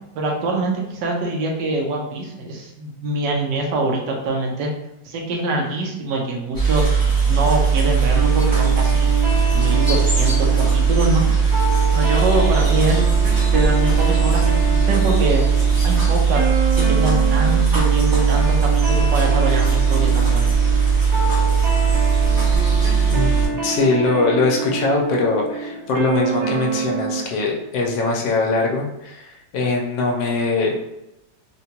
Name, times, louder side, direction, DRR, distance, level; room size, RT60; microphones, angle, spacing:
voice 1, 0.1-4.7 5.0-6.9 7.3-9.1 9.5-11.3 11.9-13.1 13.5-15.4 15.8-16.5 16.8-20.5, right 2 dB, 80° right, 0 dB, 1.3 m, -24 dB
sound 1, 6.5-23.5, right 6 dB, 35° right, 0.3 m, -18 dB
sound 2, 8.1-27.3, right 4 dB, 55° right, 1.3 m, -27 dB
voice 2, 23.6-30.8, left 3 dB, 80° left, 0 dB, 1.3 m, -21 dB
3.8 x 2.2 x 2.8 m, 0.89 s
omnidirectional pair, 2.0 m